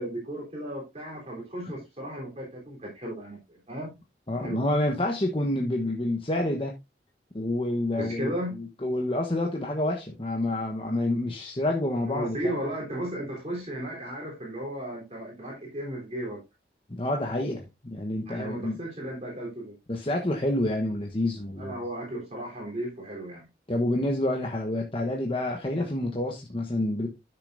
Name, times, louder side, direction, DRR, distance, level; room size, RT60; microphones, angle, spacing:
voice 1, 0.0-3.9 4.4-4.6 7.9-8.6 12.1-16.4 18.3-19.8 21.6-23.5, right 1 dB, 35° right, 3.7 m, -35 dB
voice 2, 4.3-6.7 7.3-12.6 16.9-18.8 19.9-21.7 23.7-27.1, left 1 dB, 30° left, 1.2 m, -28 dB
12.0 x 6.8 x 2.6 m
head